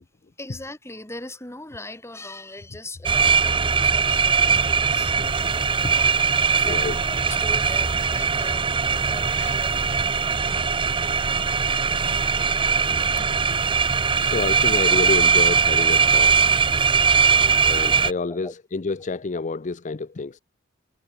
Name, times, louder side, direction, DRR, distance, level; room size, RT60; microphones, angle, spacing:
voice 1, 0.4-5.5 6.6-10.5 11.7-12.3 13.2-14.3 18.3-18.6, left 2 dB, 15° left, 3.6 m, -41 dB
sound 1, 3.1-18.1, right 5 dB, 25° right, 0.8 m, -20 dB
voice 2, 6.6-7.0 10.5-10.6 11.0-11.2 12.9-13.0 14.2-16.5 17.6-20.4, left 3 dB, 40° left, 0.6 m, -29 dB
head